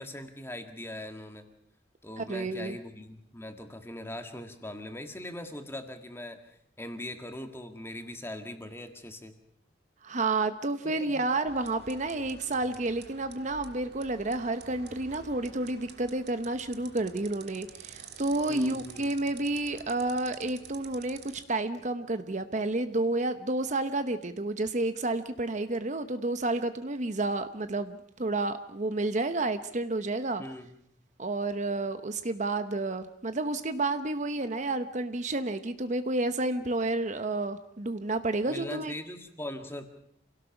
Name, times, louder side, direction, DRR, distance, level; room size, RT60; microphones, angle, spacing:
voice 1, 0.0-1.5 2.0-6.4 6.8-9.3 10.8-11.3 18.5-19.2 30.4-30.7 38.5-39.9, left 1 dB, 15° left, 6 dB, 1.9 m, -41 dB
voice 2, 2.2-2.8 10.0-21.2 21.5-30.4 31.2-38.9, right 2 dB, 40° right, 10 dB, 0.9 m, -30 dB
sound 1, 11.4-21.4, right 6 dB, 65° right, 1.7 m, -49 dB
27.5 x 17.5 x 6.0 m, 0.69 s
head